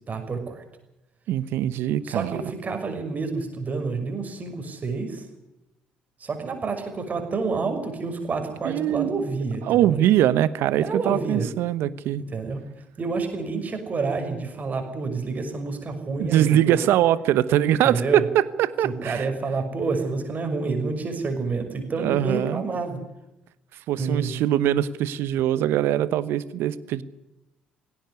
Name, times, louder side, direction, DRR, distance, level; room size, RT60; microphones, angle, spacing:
voice 1, 0.1-0.6 2.0-5.3 6.2-10.0 10.8-11.5 12.3-12.6 13.0-16.7 17.8-18.2 18.8-23.0 24.0-24.3, right 4 dB, 40° right, 6 dB, 6.0 m, -28 dB
voice 2, 1.3-2.4 8.6-9.2 9.7-12.2 16.2-19.2 22.0-22.6 23.9-27.0, right 12 dB, 65° right, 17 dB, 1.0 m, -22 dB
18.5 x 17.0 x 9.7 m, 0.90 s
hypercardioid pair, 50°, 4 cm